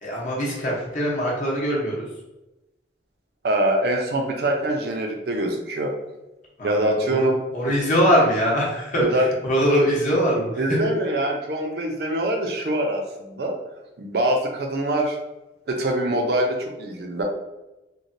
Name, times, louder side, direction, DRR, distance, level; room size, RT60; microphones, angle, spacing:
voice 1, 0.0-2.1 6.6-10.8, equal, 45° left, -5 dB, 0.7 m, -22 dB
voice 2, 3.4-5.9 6.6-7.4 9.0-9.3 10.6-13.5 14.0-15.2 15.7-17.2, right 1 dB, 60° right, 2 dB, 0.5 m, -24 dB
3.1 x 2.1 x 2.6 m, 0.99 s
head